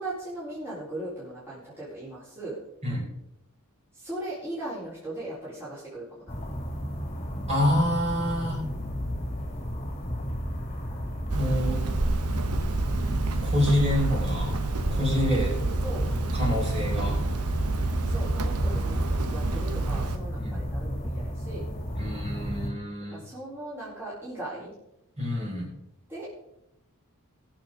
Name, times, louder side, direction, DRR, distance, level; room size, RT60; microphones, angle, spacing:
voice 1, 0.0-2.6 3.9-6.3 11.5-11.8 15.8-16.1 18.0-21.7 23.1-24.7 26.1-26.3, right 1 dB, 10° right, -10 dB, 4.4 m, -38 dB
sound 1, 6.3-22.7, equal, 30° left, 2.4 m, -32 dB
voice 2, 7.5-8.6 11.3-11.8 13.4-14.6 14.9-15.5 16.1-17.2 20.4-20.6 22.0-23.2 25.2-25.7, left 1 dB, 30° right, -4 dB, 5.5 m, -27 dB
Hammer, 11.3-20.2, right 3 dB, 90° right, 1.1 m, -29 dB
21.5 x 7.3 x 3.9 m, 0.84 s
head